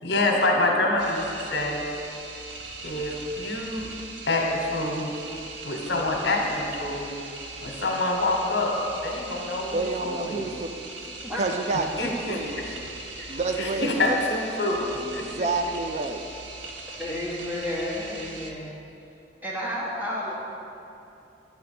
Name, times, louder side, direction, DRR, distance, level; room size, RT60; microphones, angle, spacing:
voice 1, 0.0-1.8 2.8-3.9 4.3-5.1 5.6-7.1 7.6-8.7 9.0-10.5 12.0-12.6 13.2-14.8 15.1-15.2, left 2 dB, 70° left, 0 dB, 1.1 m, -26 dB
sound 1, 1.0-18.5, right 3 dB, 85° right, 0.6 m, -40 dB
voice 2, 9.7-10.7 11.4-12.8 13.3-14.2 14.8-16.2, right 3 dB, 40° right, 6 dB, 0.3 m, -29 dB
voice 3, 17.0-18.7 19.4-20.3, left 1 dB, 10° right, -6 dB, 1.2 m, -31 dB
9.0 x 3.5 x 6.7 m, 2.7 s
head